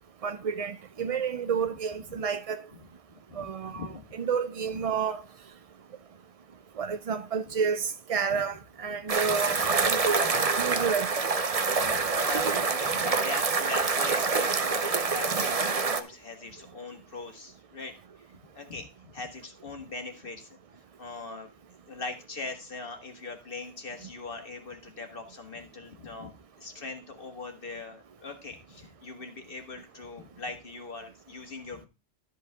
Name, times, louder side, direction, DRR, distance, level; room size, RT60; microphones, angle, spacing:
voice 1, 0.2-2.6 3.4-5.2 6.8-9.6 9.9-10.3 10.6-11.1, right 6 dB, 60° right, 0.3 m, -30 dB
voice 2, 3.1-3.4 3.7-4.0 8.3-8.4 9.3-9.4 9.6-10.0 10.7-10.9 11.7-17.9 18.5-18.9 19.1-20.6 21.0-21.5 21.9-26.3 26.6-31.9, left 3 dB, 45° left, 1.9 m, -41 dB
sound 1, 9.1-16.0, right 4 dB, 35° right, 0.7 m, -26 dB
12.5 x 5.5 x 3.6 m
omnidirectional pair, 1.3 m